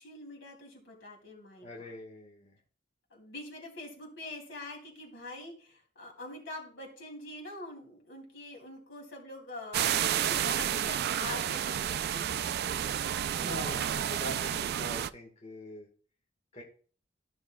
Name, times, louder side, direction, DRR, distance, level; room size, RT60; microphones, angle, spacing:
voice 1, 0.0-1.9 3.1-12.2, left 2 dB, 65° left, 0 dB, 2.6 m, -45 dB
voice 2, 1.6-2.6 13.4-15.9 16.5-16.6, equal, 35° left, -2 dB, 1.5 m, -43 dB
sound 1, 9.7-15.1, right 10 dB, 55° right, 0.3 m, -31 dB
13.0 x 6.0 x 2.3 m, 0.42 s
head